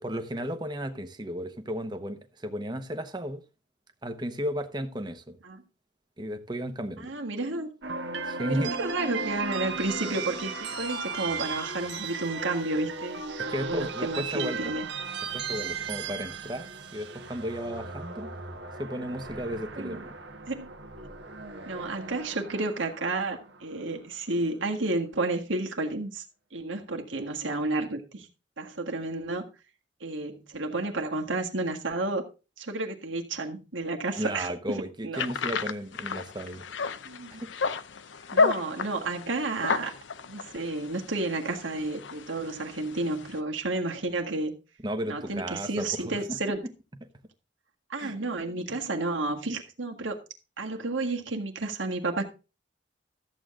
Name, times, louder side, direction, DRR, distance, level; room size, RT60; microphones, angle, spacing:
voice 1, 0.0-3.4 4.0-5.4 6.2-7.1 8.3-8.8 13.4-14.7 15.3-18.3 18.8-20.1 34.2-36.7 37.4-37.7 44.8-46.4 48.0-48.2, equal, 25° right, 0.9 m, -34 dB
voice 2, 7.0-7.7 8.5-14.9 19.8-20.0 20.5-20.7 21.6-26.2 26.5-28.3 28.6-29.5 30.0-32.2 32.6-34.5 35.0-35.3 37.1-37.4 38.3-39.9 40.3-44.5 45.1-46.6 47.9-50.2 50.6-52.2, right 2 dB, 90° right, 1.8 m, -31 dB
sound 1, 7.8-24.0, right 4 dB, 65° right, 1.4 m, -36 dB
sound 2, 35.1-43.4, left 4 dB, 80° left, 0.7 m, -32 dB
13.5 x 7.8 x 3.7 m
head